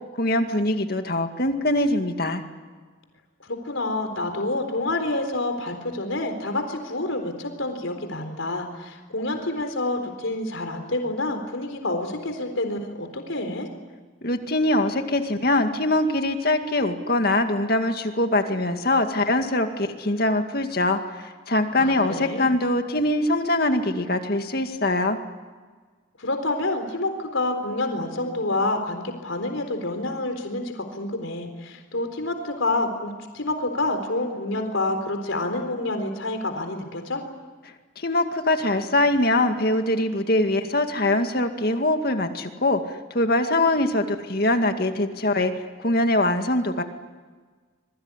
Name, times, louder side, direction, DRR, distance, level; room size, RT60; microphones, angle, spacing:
voice 1, 0.2-2.4 14.2-25.2 38.0-45.5 45.8-46.8, left 1 dB, 50° left, 6 dB, 2.2 m, -23 dB
voice 2, 3.4-13.7 21.7-22.5 26.2-37.2, left 2 dB, 85° left, 5 dB, 4.1 m, -28 dB
27.0 x 22.5 x 9.8 m, 1.4 s
head